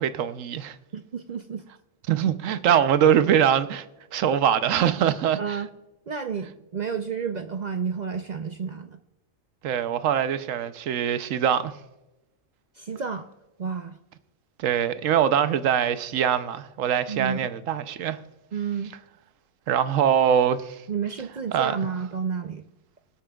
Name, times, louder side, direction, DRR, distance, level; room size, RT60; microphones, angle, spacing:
voice 1, 0.0-0.8 2.1-3.8 4.1-5.6 9.6-11.7 14.6-18.2 19.7-20.8 21.5-21.8, right 9 dB, 75° right, 1.0 m, -23 dB
voice 2, 0.9-1.6 5.4-5.7 6.1-9.0 12.8-13.3 13.6-14.0 17.1-17.5 18.5-18.9 20.9-22.6, right 6 dB, 55° right, 0.5 m, -31 dB
25.0 x 8.7 x 2.3 m
omnidirectional pair, 1.4 m